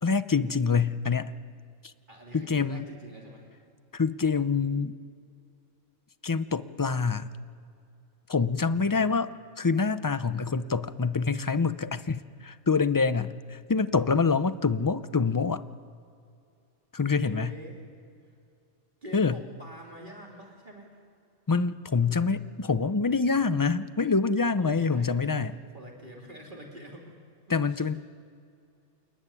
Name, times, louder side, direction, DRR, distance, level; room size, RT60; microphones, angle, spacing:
voice 1, 0.0-1.3 2.3-2.8 3.9-4.9 6.2-7.3 8.3-15.6 16.9-17.5 19.1-19.4 21.5-25.6 27.5-28.0, left 4 dB, 30° left, 13 dB, 0.4 m, -26 dB
voice 2, 2.1-3.4 17.2-18.0 19.0-20.9 24.6-27.2 27.7-27.9, right 1 dB, 40° right, -1 dB, 3.0 m, -46 dB
28.0 x 11.0 x 9.8 m, 2.5 s
omnidirectional pair, 1.2 m